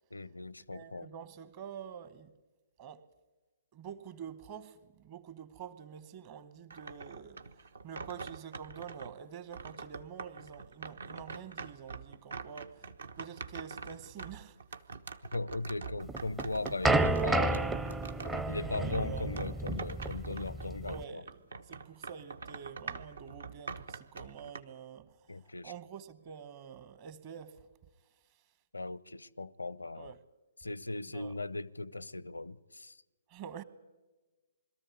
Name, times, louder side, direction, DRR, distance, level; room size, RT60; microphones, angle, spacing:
voice 1, 0.1-1.1 15.3-17.8 18.5-21.2 25.3-25.7 28.7-30.1 30.6-33.0, left 2 dB, 80° left, 0.6 m, -38 dB
voice 2, 0.7-2.4 2.8-3.1 3.7-14.6 18.6-19.3 20.8-27.7 30.0-30.2 31.1-31.4 33.3-33.6, right 7 dB, 35° right, 1.1 m, -47 dB
sound 1, 6.7-9.1 9.5-21.0 21.3-24.6, right 4 dB, 65° right, 1.0 m, -45 dB
sound 2, 16.1-21.0, right 2 dB, 10° right, 0.6 m, -31 dB
22.0 x 14.0 x 9.6 m
figure-of-eight pair, 125°, 0 cm